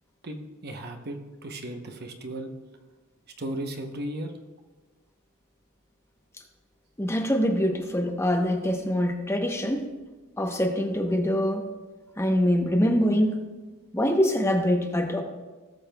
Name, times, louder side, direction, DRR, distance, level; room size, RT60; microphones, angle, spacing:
voice 1, 0.2-2.5 3.4-4.3, right 1 dB, 50° right, 5 dB, 0.8 m, -35 dB
voice 2, 7.0-9.9 10.4-11.6 12.2-13.4 13.9-15.2, equal, 10° left, 3 dB, 0.8 m, -24 dB
18.0 x 7.1 x 2.3 m, 1.3 s
head